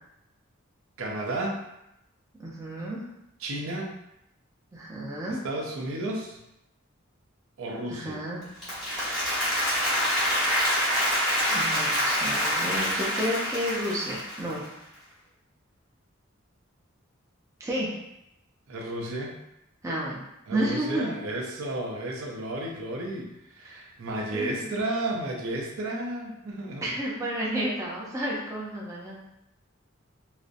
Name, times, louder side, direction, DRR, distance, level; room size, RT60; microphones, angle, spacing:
voice 1, 1.0-1.6 3.4-4.0 5.3-6.4 7.6-8.2 18.7-19.4 20.5-26.9, right 1 dB, 85° right, -1 dB, 0.5 m, -32 dB
voice 2, 2.4-3.0 4.7-5.4 7.9-8.4 11.5-14.6 17.6-17.9 19.8-20.2 20.5-21.1 23.6-23.8 24.3-24.7 26.8-29.2, equal, 15° right, -5 dB, 0.4 m, -31 dB
Applause, 8.4-14.7, equal, ahead, 1.0 m, -26 dB
2.5 x 2.0 x 2.5 m, 0.86 s
head